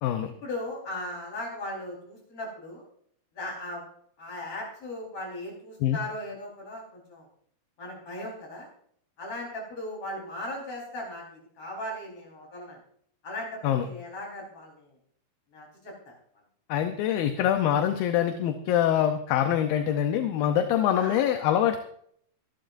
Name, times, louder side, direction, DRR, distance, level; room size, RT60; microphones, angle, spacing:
voice 1, 0.2-2.8 3.3-3.8 4.2-7.3 7.8-8.7 9.2-12.8 13.2-14.9 15.5-16.1 21.0-21.2, left 1 dB, 40° left, -1 dB, 5.3 m, -38 dB
voice 2, 16.7-21.8, left 10 dB, 75° left, 6 dB, 2.5 m, -24 dB
25.5 x 11.5 x 2.6 m, 0.65 s
omnidirectional pair, 4.5 m